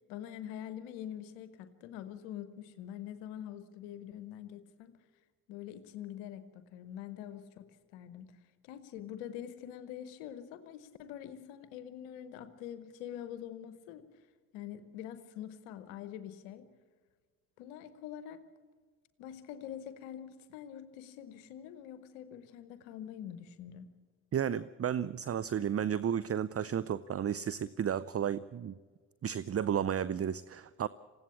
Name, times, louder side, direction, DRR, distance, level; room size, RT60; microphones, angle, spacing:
voice 1, 0.1-4.9 5.5-7.7 7.9-8.3 8.6-14.1 14.5-16.7 17.6-18.4 19.2-23.9, left 10 dB, 90° left, 11 dB, 0.9 m, -45 dB
voice 2, 24.3-28.7 29.2-30.9, right 9 dB, 40° right, 18 dB, 0.6 m, -33 dB
20.0 x 16.0 x 8.5 m, 1.5 s
hypercardioid pair, 40°, 38 cm